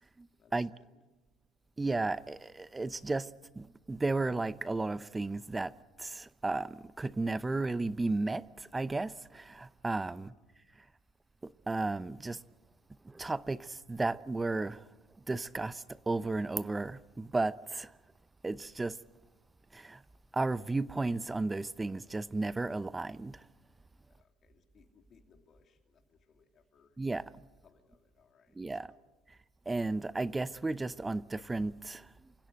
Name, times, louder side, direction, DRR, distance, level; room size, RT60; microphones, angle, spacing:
voice 1, 1.8-5.7 6.0-10.3 11.4-12.4 13.0-14.8 15.3-17.9 18.4-19.0 19.7-20.0 20.3-23.4 27.0-27.2 28.6-28.9 29.7-32.1, right 3 dB, 15° right, 0.6 m, -34 dB
voice 2, 24.1-27.0 27.6-29.0, left 6 dB, 45° left, 2.8 m, -66 dB
28.0 x 16.0 x 7.9 m
supercardioid pair, 95°, 0 cm